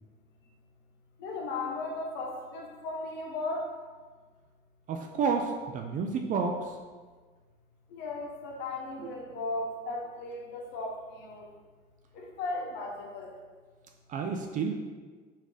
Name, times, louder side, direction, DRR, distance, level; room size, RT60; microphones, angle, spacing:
voice 1, 1.2-3.7 7.9-11.5 12.1-13.4, left 2 dB, 70° left, 0 dB, 0.9 m, -36 dB
voice 2, 4.9-6.8 9.0-9.1 14.1-14.7, right 5 dB, 45° right, 3 dB, 0.4 m, -30 dB
3.6 x 2.7 x 4.7 m, 1.5 s
cardioid pair, 120°, 19 cm